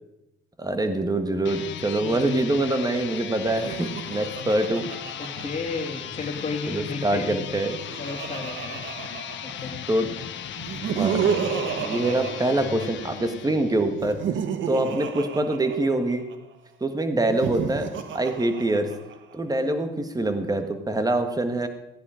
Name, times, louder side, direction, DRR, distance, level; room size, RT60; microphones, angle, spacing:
voice 1, 0.6-4.9 6.7-7.8 9.9-10.1 10.9-11.4 11.8-14.2 14.6-16.2 16.8-17.9 18.1-18.9 19.3-21.7, right 2 dB, 20° right, 7 dB, 1.7 m, -25 dB
sound 1, 1.4-14.1, left 9 dB, 70° left, 1.1 m, -37 dB
voice 2, 2.0-2.3 5.2-7.5 8.0-8.8 9.4-9.8 14.6-14.8 17.1-17.3, left 3 dB, 35° left, 1 dB, 2.6 m, -34 dB
Laughter, 3.5-6.2 7.3-9.9 10.6-13.3 13.9-16.3 17.2-19.3, right 7 dB, 75° right, 1.3 m, -32 dB
16.0 x 10.0 x 5.1 m, 0.88 s
cardioid pair, 90°, 20 cm